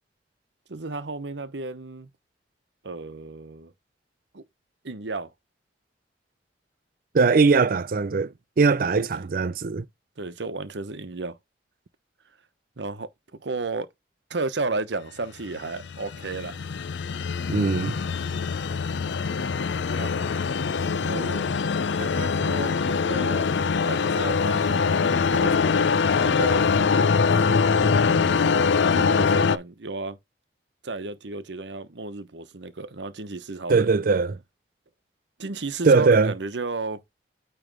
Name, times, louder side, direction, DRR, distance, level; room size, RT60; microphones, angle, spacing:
voice 1, 0.7-2.1 2.8-3.7 4.3-4.4 4.8-5.3 8.8-9.3 10.2-11.4 12.8-13.9 14.3-16.6 20.0-20.3 20.9-21.5 21.9-25.8 26.2-27.1 27.4-30.2 30.8-33.9 35.4-37.0, right 3 dB, 85° right, 1.0 m, -34 dB
voice 2, 7.1-9.8 17.5-17.9 33.7-34.4 35.8-36.3, right 4 dB, 55° right, 0.5 m, -20 dB
sound 1, 15.5-29.6, left 5 dB, 90° left, 0.5 m, -23 dB
9.0 x 3.3 x 4.8 m
head